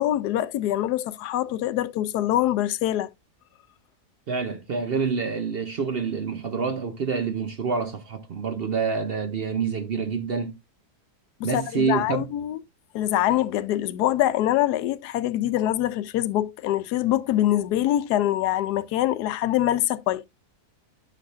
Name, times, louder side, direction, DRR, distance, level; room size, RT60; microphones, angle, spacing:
voice 1, 0.0-3.1 11.5-12.6 12.9-20.2, left 13 dB, 85° left, 1.2 m, -24 dB
voice 2, 4.3-10.5 11.4-12.3, right 5 dB, 55° right, 0.7 m, -27 dB
9.9 x 6.4 x 2.4 m
omnidirectional pair, 1.7 m